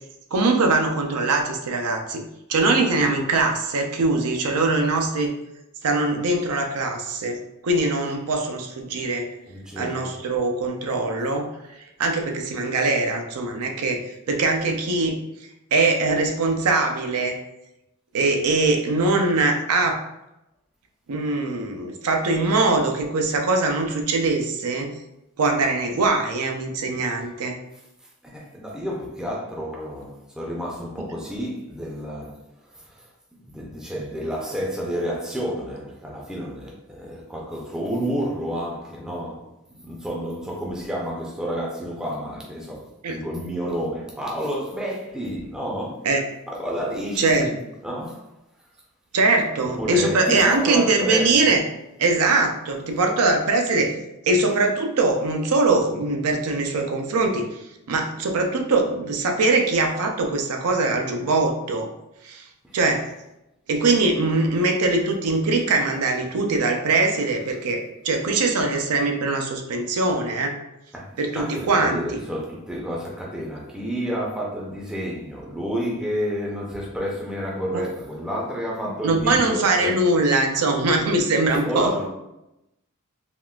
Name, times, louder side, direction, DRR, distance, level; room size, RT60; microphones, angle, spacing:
voice 1, 0.3-2.2 2.5-5.3 5.8-9.3 9.8-11.5 12.0-14.0 14.3-15.2 15.7-17.4 18.1-20.0 21.1-24.9 25.4-27.6 43.0-43.2 46.0-46.2 47.2-47.5 49.1-51.6 52.0-53.9 54.3-57.4 57.9-61.9 62.2-62.4 62.7-63.1 63.7-70.6 71.2-72.0 77.7-77.8 79.0-81.9, right 3 dB, 90° right, 0.5 m, -22 dB
voice 2, 9.5-10.1 28.2-32.4 32.7-33.1 33.4-39.5 39.8-46.0 46.5-47.6 47.8-48.3 49.8-51.6 62.6-62.8 70.9-80.1 81.5-82.1, equal, 5° right, 0.4 m, -30 dB
3.5 x 2.3 x 2.3 m
head